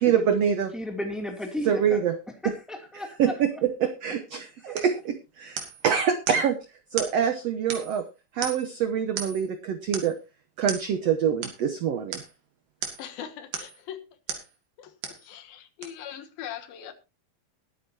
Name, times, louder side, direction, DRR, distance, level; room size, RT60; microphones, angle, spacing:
voice 1, 0.0-0.7 1.6-2.2 3.2-6.6 6.9-8.1 8.3-10.1 10.6-12.2, right 8 dB, 80° right, 1.4 m, -25 dB
voice 2, 0.7-2.0 2.4-3.3, left 1 dB, ahead, 1.9 m, -34 dB
sound 1, 4.8-5.0 5.6-5.9 6.3-6.5 7.0-7.2 7.7-8.0 8.4-8.8 9.2-9.5 9.9-10.2 10.7-10.9 11.4-11.6 12.1-12.3 12.8-13.1 13.5-13.8 14.3-14.5 15.0-15.3 15.8-15.9, right 6 dB, 65° right, 3.6 m, -35 dB
voice 3, 13.0-14.4 14.8-16.9, left 10 dB, 80° left, 3.1 m, -41 dB
20.5 x 9.2 x 2.8 m
omnidirectional pair, 4.2 m